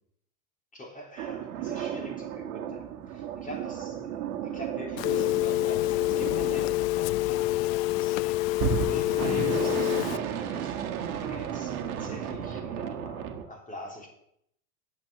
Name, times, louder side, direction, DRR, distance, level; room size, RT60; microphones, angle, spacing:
voice 1, 0.7-8.4 8.7-14.1, equal, 20° left, 1 dB, 3.6 m, -44 dB
sound 1, 1.2-7.5 8.5-13.5, right 8 dB, 75° right, 1.5 m, -34 dB
Telephone, 5.0-10.2, left 17 dB, 65° left, 0.5 m, -27 dB
9.0 x 8.3 x 7.0 m, 0.73 s
hypercardioid pair, 90°, 43 cm